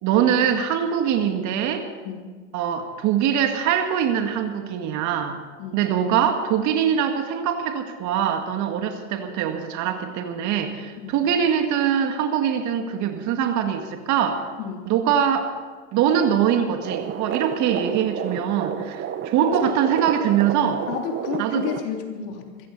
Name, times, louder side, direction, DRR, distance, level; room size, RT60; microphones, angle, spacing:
voice 1, 0.0-1.8 2.5-5.4 5.7-14.5 14.9-15.5 15.9-20.8 21.4-21.6, right 8 dB, 45° right, 6 dB, 1.9 m, -23 dB
voice 2, 14.6-14.9 19.5-19.8 20.9-22.7, left 6 dB, 55° left, 2 dB, 3.4 m, -31 dB
sound 1, 16.8-21.8, right 9 dB, 30° right, 1.0 m, -31 dB
22.5 x 15.5 x 4.2 m, 1.5 s
hypercardioid pair, 105°, 41 cm